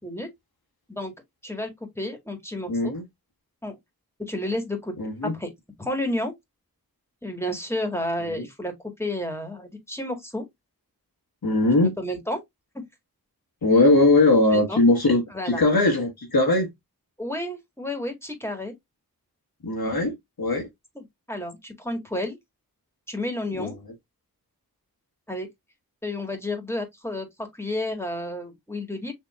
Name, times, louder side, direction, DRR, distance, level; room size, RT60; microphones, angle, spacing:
voice 1, 1.4-2.9 3.6-3.8 4.2-4.9 5.2-5.5 5.8-6.3 7.2-10.4 12.0-12.4 14.5-14.8 15.3-15.6 17.2-18.7 20.9-22.4 23.1-23.8 25.3-25.5 26.0-29.1, left 1 dB, 5° left, 1.6 m, -31 dB
voice 2, 2.7-3.0 5.0-5.3 8.3-8.4 11.4-11.9 13.6-16.7 19.6-20.7 23.6-23.7, left 2 dB, 85° left, 1.7 m, -20 dB
6.1 x 3.0 x 2.4 m
wide cardioid pair, 50°, 35 cm